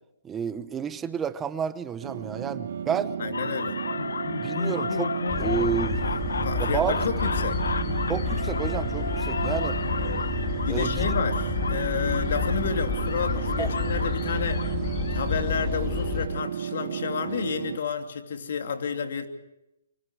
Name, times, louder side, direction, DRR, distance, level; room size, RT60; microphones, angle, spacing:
voice 1, 0.2-3.1 4.4-6.0 6.6-6.9 8.1-9.8 10.7-11.1 13.6-13.7, right 7 dB, 10° right, 13 dB, 0.9 m, -30 dB
sound 1, 2.0-17.8, right 8 dB, 60° right, 0.9 m, -33 dB
voice 2, 3.2-3.8 6.4-7.6 10.7-14.6 15.1-19.3, left 6 dB, 60° left, 6 dB, 2.9 m, -30 dB
sound 2, 3.3-15.3, left 5 dB, 85° left, 0.9 m, -33 dB
sound 3, 5.3-16.3, left 5 dB, 25° left, 2.3 m, -30 dB
26.0 x 24.5 x 4.9 m, 0.90 s
hypercardioid pair, 160°, 0 cm